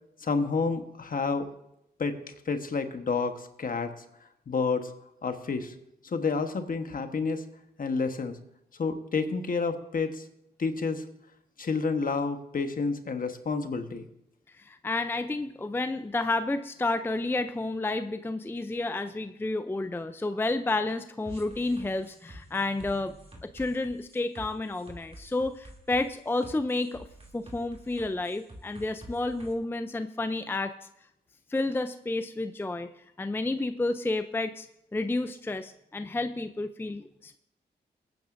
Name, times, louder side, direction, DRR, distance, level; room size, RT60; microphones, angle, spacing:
voice 1, 0.2-1.5 2.0-4.0 4.5-4.9 5.2-5.7 6.0-7.4 7.8-8.4 8.7-10.3 10.6-11.1 11.6-14.1, left 4 dB, 50° left, 7 dB, 1.2 m, -29 dB
voice 2, 14.6-23.1 23.4-27.0 27.3-30.7 31.5-32.9 33.2-34.7 34.9-37.4, left 2 dB, 10° left, 10 dB, 0.5 m, -30 dB
sound 1, 21.3-29.5, right 1 dB, 35° right, 2.8 m, -48 dB
21.0 x 9.2 x 2.6 m, 0.81 s
cardioid pair, 60°, 18 cm